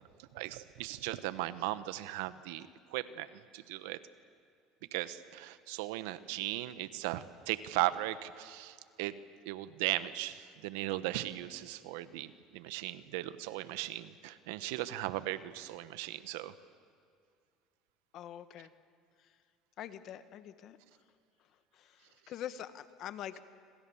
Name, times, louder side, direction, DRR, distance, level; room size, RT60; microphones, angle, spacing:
voice 1, 0.3-3.3 3.5-4.0 4.9-9.1 9.5-16.5, right 16 dB, 80° right, 13 dB, 1.2 m, -37 dB
voice 2, 18.1-18.7 19.2-19.3 19.8-20.8 21.7-23.4, left 11 dB, 55° left, 11 dB, 1.5 m, -44 dB
27.0 x 26.0 x 7.2 m, 2.3 s
supercardioid pair, 95°, 0 cm